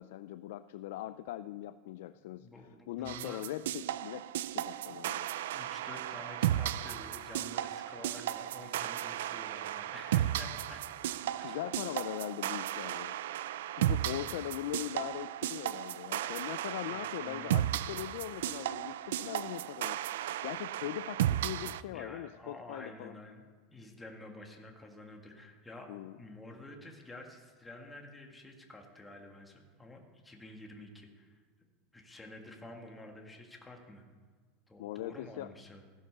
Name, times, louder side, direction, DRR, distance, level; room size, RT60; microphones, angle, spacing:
voice 1, 0.0-5.3 11.4-13.2 13.8-23.2 25.9-26.2 34.8-35.5, left 14 dB, 70° left, 13 dB, 0.4 m, -41 dB
voice 2, 2.4-3.4 4.9-5.0 5.5-11.1 11.4-11.6 14.0-14.3 14.7-14.8 16.9-17.6 21.9-25.9 26.2-31.4 31.9-34.1 34.7-35.8, left 1 dB, 10° left, 2 dB, 1.7 m, -50 dB
sound 1, 3.1-21.8, right 12 dB, 85° right, 0.4 m, -35 dB
15.0 x 10.0 x 6.7 m, 1.5 s
supercardioid pair, 160°, 0 cm